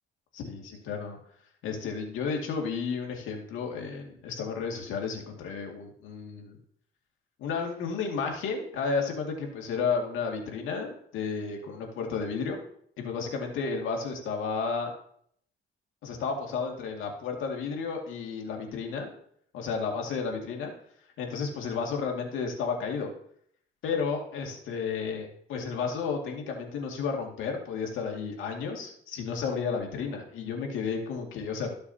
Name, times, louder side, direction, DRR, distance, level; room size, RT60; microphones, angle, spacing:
voice 1, 0.3-1.2 1.6-6.6 7.4-12.6 13.0-14.9 16.0-19.1 19.5-20.7 21.2-23.1 23.8-31.7, left 5 dB, 85° left, 2 dB, 2.1 m, -32 dB
14.0 x 6.7 x 2.8 m, 0.65 s
cardioid pair, 90°, 20 cm